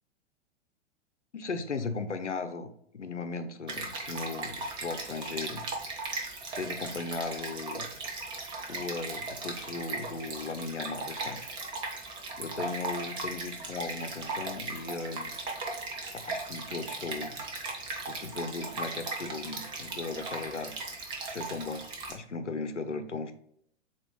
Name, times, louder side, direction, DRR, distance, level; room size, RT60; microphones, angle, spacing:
voice 1, 1.3-2.7 2.9-5.7 6.5-7.9 8.7-11.4 12.4-15.4 16.1-17.4 18.0-20.7 21.2-23.3, left 4 dB, 85° left, 9 dB, 0.6 m, -37 dB
Stream, 3.7-22.1, right 3 dB, 15° right, 0.6 m, -38 dB
7.0 x 2.4 x 3.0 m, 0.68 s
figure-of-eight pair, 105°, 35 cm